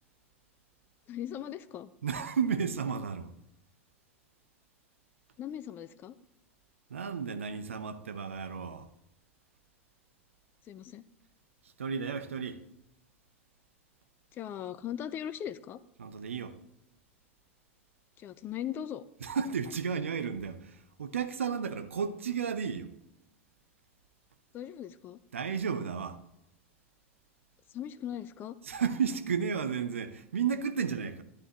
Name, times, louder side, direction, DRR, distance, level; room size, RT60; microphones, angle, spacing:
voice 1, 1.1-1.9 5.4-6.2 10.7-11.0 14.3-15.8 18.2-19.0 24.5-25.2 27.7-28.5, left 10 dB, 30° left, 0.5 m, -39 dB
voice 2, 2.0-3.3 6.9-8.9 11.8-12.6 16.0-16.5 19.2-20.6 21.0-22.9 25.3-26.2 28.7-31.2, right 6 dB, 70° right, 0.7 m, -33 dB
11.5 x 9.9 x 3.0 m
figure-of-eight pair, 85°, 7 cm